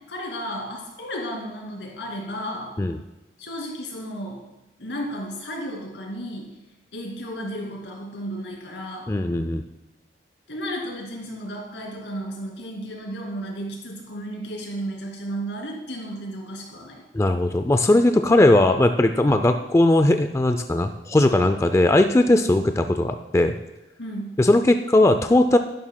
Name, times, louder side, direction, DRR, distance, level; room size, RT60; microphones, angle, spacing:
voice 1, 0.0-2.7 3.4-4.5 4.8-6.6 6.9-9.1 10.5-17.0 24.0-24.4, equal, 85° left, -1 dB, 2.6 m, -33 dB
voice 2, 9.1-9.6 17.1-23.6 24.4-25.6, left 1 dB, 15° left, 7 dB, 0.4 m, -18 dB
11.5 x 11.0 x 2.2 m, 1.0 s
head